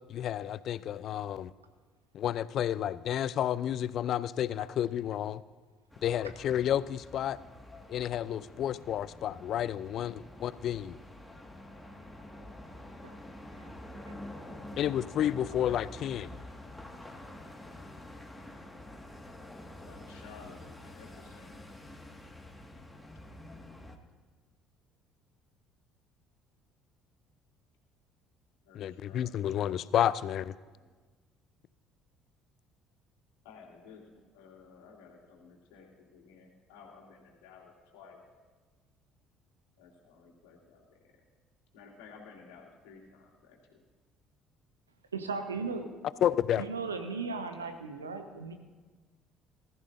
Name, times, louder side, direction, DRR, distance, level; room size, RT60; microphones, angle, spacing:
voice 1, 0.1-1.5 2.1-5.4 6.0-7.4 7.9-11.0 14.8-16.4 28.7-30.6 46.2-46.7, left 10 dB, 55° left, 18 dB, 0.4 m, -31 dB
sound 1, 5.9-24.0, left 1 dB, 5° left, 1.9 m, -48 dB
voice 2, 13.5-14.2 14.5-14.7 45.1-45.9 46.6-48.5, right 4 dB, 85° right, 7 dB, 1.1 m, -37 dB
voice 3, 14.5-14.9 19.7-21.6 28.6-29.8 30.8-30.9 33.4-34.0 34.3-35.9 36.1-38.2 39.8-40.8 41.7-43.6, left 5 dB, 70° left, -1 dB, 2.7 m, -54 dB
20.0 x 13.5 x 2.7 m, 1.4 s
figure-of-eight pair, 55°, 0 cm